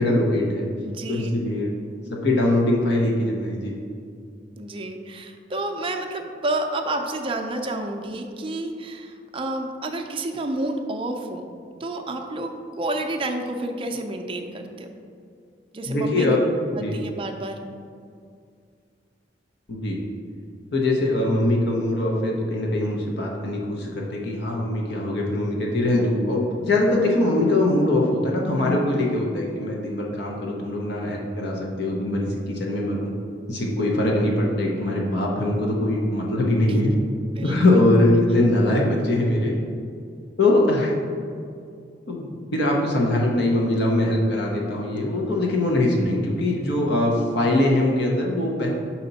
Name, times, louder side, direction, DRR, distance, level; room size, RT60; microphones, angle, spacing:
voice 1, 0.0-0.7 1.1-1.7 2.1-3.7 15.9-16.4 16.8-16.9 19.7-20.0 20.7-33.1 33.5-36.9 37.4-39.5 40.4-40.9 42.1-48.7, left 1 dB, 65° left, -2 dB, 0.8 m, -22 dB
voice 2, 0.8-1.4 4.6-11.4 11.8-14.9 15.7-16.4 16.7-17.6 37.4-37.8, right 2 dB, 30° right, 4 dB, 0.4 m, -30 dB
5.7 x 4.2 x 4.0 m, 2.3 s
head